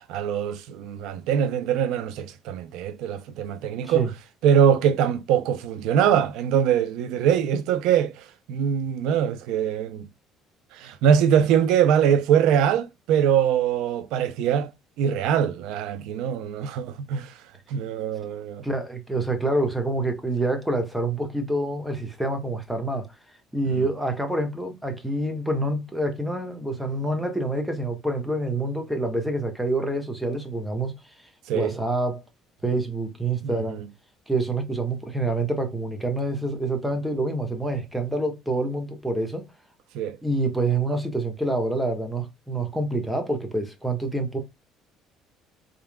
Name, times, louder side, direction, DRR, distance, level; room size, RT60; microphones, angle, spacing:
voice 1, 0.1-4.1 4.4-10.1 10.7-14.7 15.0-17.4 17.7-18.6 31.5-31.8 33.4-33.8 39.9-40.2, right 8 dB, 80° right, 0.5 m, -23 dB
voice 2, 18.6-23.1 23.5-30.9 31.5-32.2 32.6-33.8 34.3-39.5 40.2-44.4, right 2 dB, 5° right, 1.4 m, -27 dB
4.3 x 3.7 x 2.2 m
cardioid pair, 105°, 0 cm